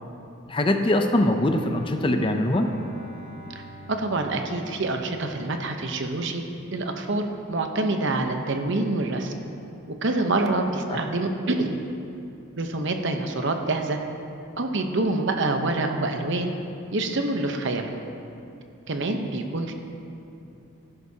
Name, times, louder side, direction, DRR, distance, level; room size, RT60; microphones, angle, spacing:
voice 1, 0.5-2.7 10.9-11.0, left 1 dB, 25° left, 5 dB, 0.5 m, -22 dB
Bowed string instrument, 1.1-5.5, equal, 25° right, 1.1 m, -46 dB
voice 2, 3.9-6.4 6.7-9.3 10.0-11.8 12.6-14.0 14.6-16.5 16.9-18.0 18.9-19.7, right 2 dB, 55° right, 5 dB, 0.9 m, -26 dB
15.5 x 11.0 x 2.8 m, 2.7 s
head